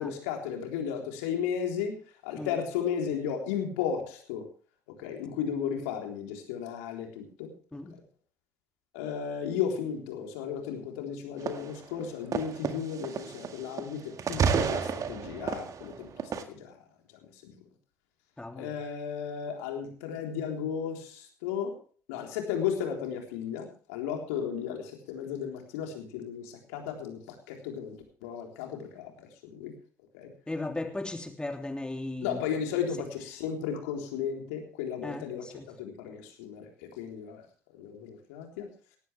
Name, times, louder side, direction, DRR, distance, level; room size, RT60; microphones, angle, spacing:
voice 1, 0.0-1.9 2.2-4.5 5.0-7.5 7.9-8.0 8.9-16.8 17.4-17.5 18.5-21.8 22.1-28.0 28.2-29.7 30.1-30.3 32.2-37.4 37.7-38.7, left 8 dB, 70° left, 2 dB, 3.7 m, -34 dB
sound 1, 11.5-11.8 12.3-13.9 14.2-16.4, right 6 dB, 40° right, 1.9 m, -30 dB
voice 2, 18.4-18.7 30.5-32.4 35.0-35.7, left 2 dB, 10° left, 5 dB, 3.0 m, -36 dB
18.0 x 15.5 x 3.4 m, 0.42 s
figure-of-eight pair, 55°, 8 cm